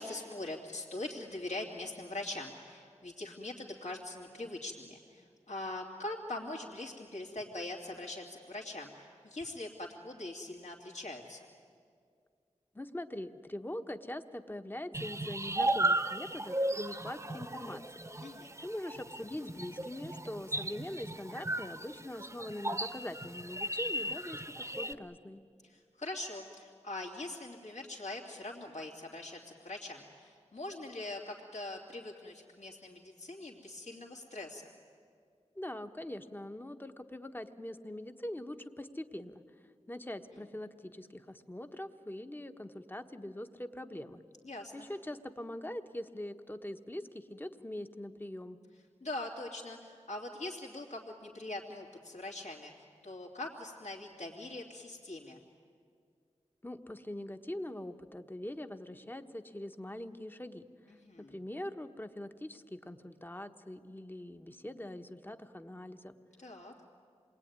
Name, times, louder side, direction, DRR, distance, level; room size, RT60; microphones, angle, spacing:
voice 1, 0.0-11.4 18.2-18.5 25.6-34.7 44.4-44.9 49.0-52.7 53.0-55.4 60.9-61.4 66.4-66.7, left 2 dB, 70° left, -3 dB, 2.8 m, -42 dB
voice 2, 12.7-17.8 18.6-25.4 35.5-39.4 39.9-44.2 44.7-48.6 56.6-60.6 61.2-66.1, left 1 dB, 15° left, 8 dB, 1.2 m, -43 dB
sound 1, 14.9-24.9, right 1 dB, 25° right, 1.1 m, -35 dB
28.0 x 21.5 x 9.6 m, 2.2 s
wide cardioid pair, 70°, 12 cm